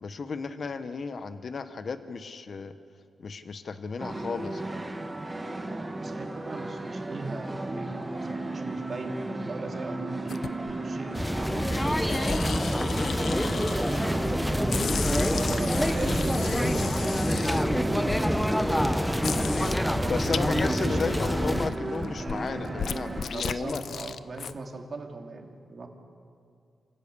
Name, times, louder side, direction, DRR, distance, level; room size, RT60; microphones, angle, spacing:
voice 1, 0.0-2.7 3.2-4.8 15.2-15.3 20.1-23.8, left 4 dB, 55° left, 10 dB, 1.2 m, -34 dB
sound 1, 4.0-23.3, right 2 dB, 20° right, 1.7 m, -33 dB
voice 2, 5.6-14.2 15.3-19.0 20.0-21.2 23.3-25.9, right 3 dB, 50° right, 2 dB, 2.8 m, -39 dB
sound 2, 10.3-10.8 11.5-14.3 14.7-18.2 18.7-18.8 19.2-20.6 21.0-24.5, left 7 dB, 70° left, 0.7 m, -35 dB
sound 3, 11.1-21.7, equal, 5° left, 1.0 m, -27 dB
28.0 x 17.0 x 7.0 m, 2.4 s
cardioid pair, 85°, 0 cm